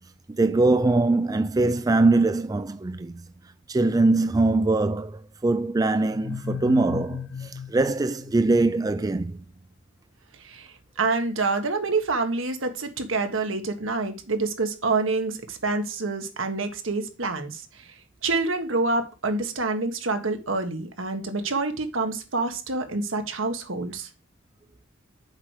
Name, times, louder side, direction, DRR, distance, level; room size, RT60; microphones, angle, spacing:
voice 1, 0.3-3.2 3.7-9.4, right 2 dB, 20° right, 0.3 m, -22 dB
sound 1, 6.1-8.9, left 6 dB, 70° left, 0.4 m, -36 dB
voice 2, 10.4-24.1, right 3 dB, 80° right, 1.5 m, -27 dB
7.3 x 4.8 x 6.4 m
head